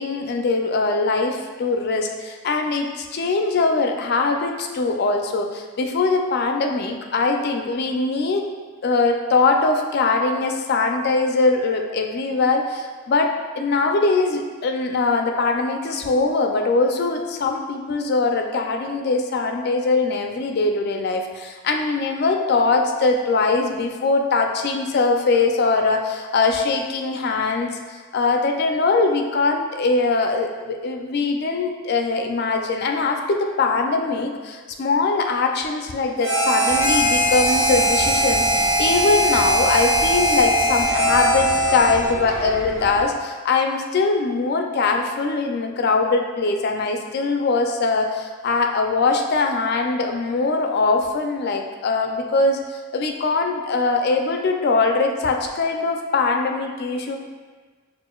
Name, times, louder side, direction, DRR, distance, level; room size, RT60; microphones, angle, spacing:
voice 1, 0.0-8.5 8.8-57.2, left 3 dB, 55° left, 3 dB, 0.4 m, -22 dB
Harmonica, 36.2-42.2, right 1 dB, 65° right, 1.3 m, -20 dB
sound 1, 36.7-43.0, equal, 15° right, 0.6 m, -35 dB
6.2 x 2.5 x 2.3 m, 1.4 s
head